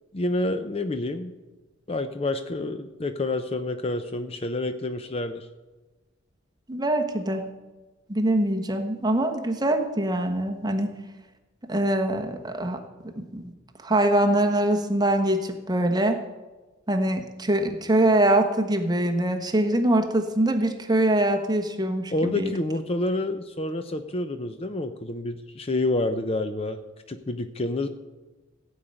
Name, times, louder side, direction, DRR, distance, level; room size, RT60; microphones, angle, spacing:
voice 1, 0.1-1.3 1.9-5.5 22.1-26.8 27.1-27.9, left 2 dB, 30° left, 9 dB, 0.6 m, -28 dB
voice 2, 6.7-7.4 8.1-10.9 11.7-12.8 13.1-13.4 13.8-16.2 16.9-22.5, right 1 dB, 20° right, 4 dB, 1.2 m, -23 dB
16.0 x 5.4 x 9.0 m, 1.2 s
head